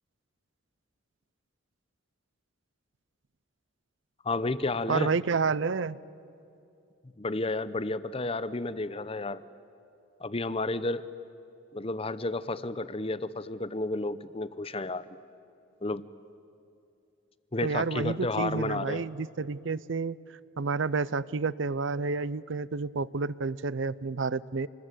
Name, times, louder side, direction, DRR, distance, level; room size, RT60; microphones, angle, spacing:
voice 1, 4.2-5.1 7.2-9.4 10.2-11.0 11.7-15.1 15.8-16.0 17.5-19.1, left 2 dB, 25° left, 15 dB, 0.7 m, -31 dB
voice 2, 4.9-6.0 17.6-20.2 20.6-24.7, right 4 dB, 60° right, 19 dB, 0.5 m, -30 dB
27.0 x 20.5 x 9.0 m, 2.6 s
head